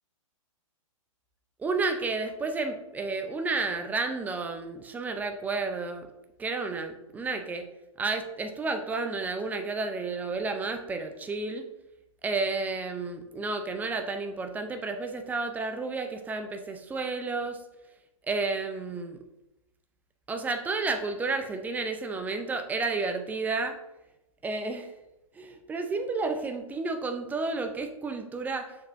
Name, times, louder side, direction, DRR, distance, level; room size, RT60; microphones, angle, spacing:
voice 1, 1.6-6.1 6.4-7.7 8.0-11.7 12.2-17.6 18.2-19.2 20.3-23.8 24.4-24.9 25.3-28.8, right 3 dB, 10° right, 7 dB, 0.6 m, -31 dB
7.8 x 6.6 x 2.7 m, 0.94 s
hypercardioid pair, 125°, 18 cm